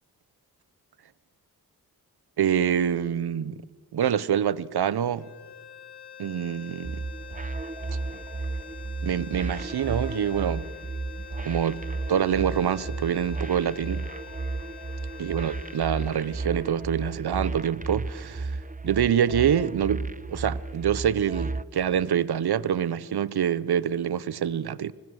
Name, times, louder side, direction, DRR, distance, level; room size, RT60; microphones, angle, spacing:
voice 1, 2.4-3.6 3.9-5.3 6.2-7.0 9.0-10.7 11.4-11.8 12.1-14.0 15.2-18.5 18.8-24.9, right 9 dB, 75° right, 0.8 m, -26 dB
sound 1, 5.2-17.4, left 9 dB, 80° left, 1.5 m, -46 dB
sound 2, 6.8-21.6, right 3 dB, 20° right, 1.0 m, -34 dB
26.0 x 25.5 x 6.4 m
cardioid pair, 50°, 39 cm